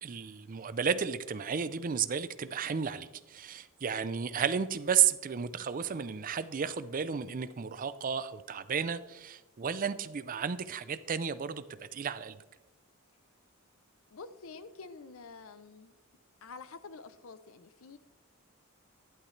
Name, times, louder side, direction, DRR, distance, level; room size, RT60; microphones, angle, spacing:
voice 1, 0.0-11.6 11.9-12.4, right 7 dB, 40° right, 14 dB, 0.5 m, -32 dB
voice 2, 14.1-15.9 16.4-18.0, left 4 dB, 75° left, 13 dB, 0.6 m, -48 dB
12.0 x 11.0 x 3.2 m, 1.1 s
head